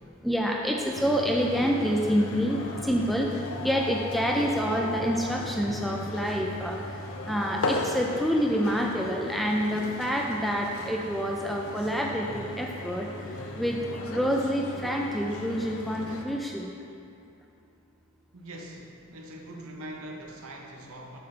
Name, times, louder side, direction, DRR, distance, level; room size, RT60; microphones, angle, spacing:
voice 1, 0.0-6.8 7.3-13.1 13.6-13.8 14.1-16.7, equal, ahead, -1 dB, 0.3 m, -27 dB
sound 1, 0.9-16.2, left 2 dB, 70° left, 0.6 m, -37 dB
voice 2, 18.3-21.2, right 1 dB, 75° right, 0 dB, 0.8 m, -42 dB
7.6 x 5.8 x 3.3 m, 2.7 s
head